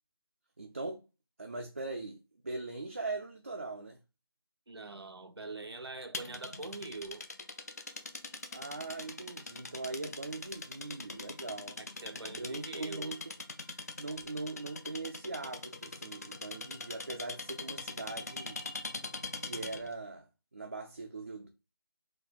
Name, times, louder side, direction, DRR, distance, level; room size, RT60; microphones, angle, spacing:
voice 1, 0.6-1.0 1.4-2.2 2.4-4.0 8.5-11.8 12.4-13.2 14.0-18.6 19.4-21.5, right 3 dB, 35° right, 0.4 m, -41 dB
voice 2, 4.7-7.3 11.8-13.2, right 3 dB, 85° right, 0.7 m, -44 dB
sound 1, 6.1-19.9, left 3 dB, 40° left, 0.4 m, -43 dB
4.1 x 2.2 x 4.5 m
figure-of-eight pair, 170°, 13 cm